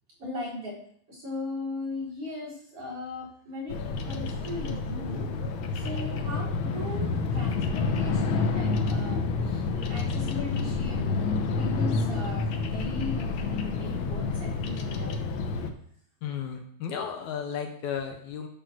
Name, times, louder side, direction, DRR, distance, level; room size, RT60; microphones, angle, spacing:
voice 1, 0.2-0.8 1.1-3.8 4.0-5.3 5.7-9.6 9.9-11.3 11.6-15.8, left 2 dB, 45° right, -7 dB, 5.1 m, -38 dB
Bird vocalization bird call bird song, 3.7-15.7, left 4 dB, 90° left, 1.1 m, -29 dB
voice 2, 16.2-18.5, left 7 dB, 75° left, 5 dB, 2.3 m, -34 dB
11.5 x 5.4 x 6.3 m, 0.64 s
omnidirectional pair, 3.6 m